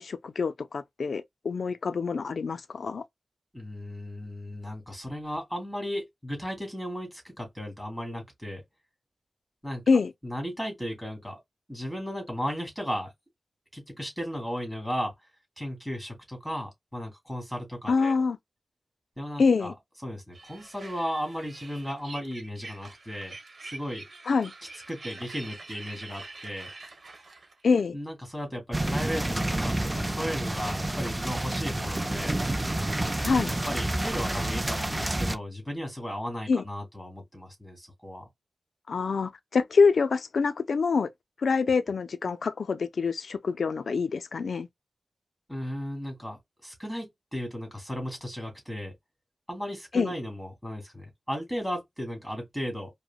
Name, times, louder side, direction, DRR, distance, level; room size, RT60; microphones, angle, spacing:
voice 1, 0.0-3.0 9.9-10.1 17.9-18.4 19.4-19.7 24.3-24.5 27.6-28.0 33.2-33.5 36.5-36.6 38.9-41.1 41.4-44.7 49.9-50.1, left 5 dB, 85° left, 0.3 m, -25 dB
voice 2, 3.5-8.6 9.6-9.9 10.2-11.4 11.7-13.1 13.7-15.1 15.6-18.2 19.2-19.7 20.0-23.4 23.6-24.1 24.9-26.7 27.9-32.4 33.5-38.2 41.6-41.7 45.5-48.9 49.5-52.9, equal, ahead, 2.3 m, -35 dB
sound 1, 20.3-27.8, right 3 dB, 60° right, 1.1 m, -45 dB
sound 2, 28.7-35.4, right 1 dB, 20° right, 0.4 m, -29 dB
4.8 x 2.1 x 2.3 m
wide cardioid pair, 80°, 0 cm